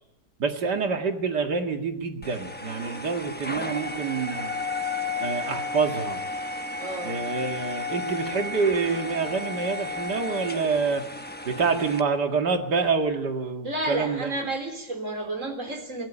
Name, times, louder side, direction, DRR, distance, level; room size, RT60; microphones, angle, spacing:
voice 1, 0.4-4.5 5.2-6.2 7.0-11.0 11.4-14.3, right 5 dB, 80° right, 5 dB, 2.6 m, -27 dB
sound 1, 2.2-12.0, left 3 dB, 10° left, 0.7 m, -33 dB
voice 2, 6.8-7.2 13.6-16.1, right 2 dB, 50° right, 6 dB, 4.0 m, -31 dB
23.5 x 18.0 x 10.0 m, 0.85 s
omnidirectional pair, 1.8 m